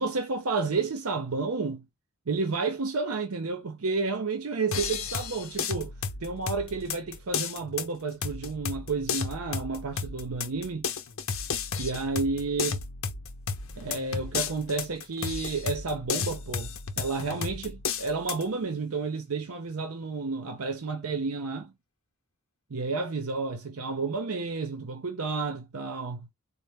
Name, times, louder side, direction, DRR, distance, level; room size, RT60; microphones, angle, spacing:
voice 1, 0.0-1.9 2.3-5.9 6.2-10.9 11.8-12.8 13.8-21.7 22.7-26.3, right 4 dB, 80° right, 0.7 m, -31 dB
sound 1, 4.7-18.4, left 6 dB, 65° left, 0.7 m, -33 dB
4.2 x 2.1 x 3.3 m
head